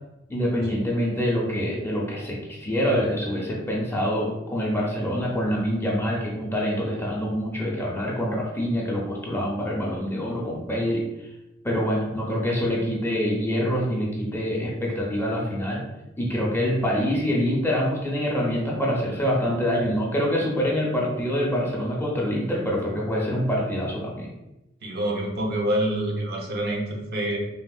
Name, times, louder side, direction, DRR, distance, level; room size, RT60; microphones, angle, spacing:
voice 1, 0.3-11.0 11.6-15.8 16.2-24.3, equal, 10° left, -3 dB, 0.5 m, -25 dB
voice 2, 24.8-27.4, right 1 dB, 55° right, 0 dB, 0.5 m, -26 dB
3.4 x 2.0 x 2.3 m, 0.96 s
head